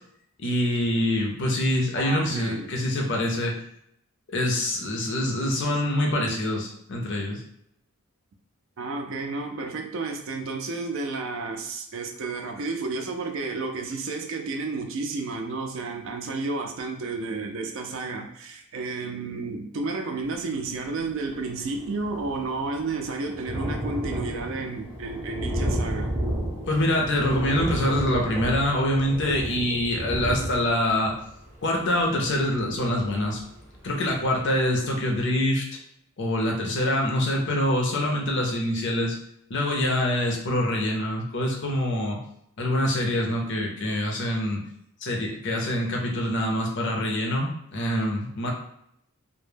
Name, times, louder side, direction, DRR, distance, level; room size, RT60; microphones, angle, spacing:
voice 1, 0.4-3.5 4.3-7.4 26.7-31.1 31.6-33.4 33.8-35.6 36.2-39.2 39.5-42.2 42.6-44.6 45.0-48.5, left 1 dB, 50° left, 0 dB, 0.5 m, -25 dB
voice 2, 1.9-2.7 8.8-26.2, right 3 dB, 60° right, 4 dB, 0.4 m, -31 dB
Thunder, 21.0-21.1 21.3-33.9 34.4-34.5 34.8-34.9, equal, 10° right, 0.6 m, -32 dB
2.1 x 2.0 x 3.2 m, 0.74 s
head